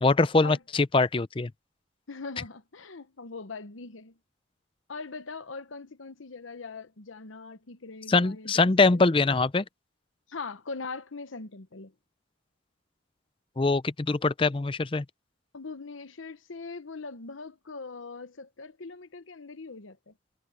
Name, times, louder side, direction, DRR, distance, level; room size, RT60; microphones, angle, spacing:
voice 1, 0.0-1.5 8.1-9.6 13.6-15.0, left 3 dB, 25° left, 0.5 m, -23 dB
voice 2, 2.1-4.2 4.9-9.0 10.3-11.9 15.5-20.1, left 4 dB, 85° left, 1.0 m, -41 dB
head